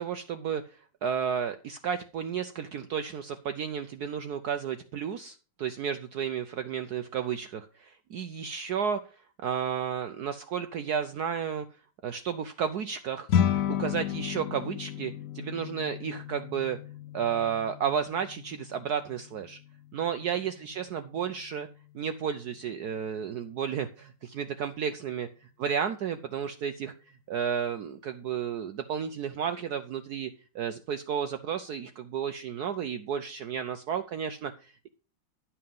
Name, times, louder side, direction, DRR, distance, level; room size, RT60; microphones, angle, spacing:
voice 1, 0.0-9.0 9.4-11.7 12.0-13.3 13.7-16.8 17.1-19.6 19.9-21.7 21.9-25.3 25.6-26.9 27.3-30.3 30.5-34.9, right 7 dB, 65° right, 8 dB, 1.0 m, -32 dB
sound 1, 13.3-22.8, left 9 dB, 55° left, 1.1 m, -34 dB
11.0 x 5.7 x 5.3 m, 0.35 s
omnidirectional pair, 2.2 m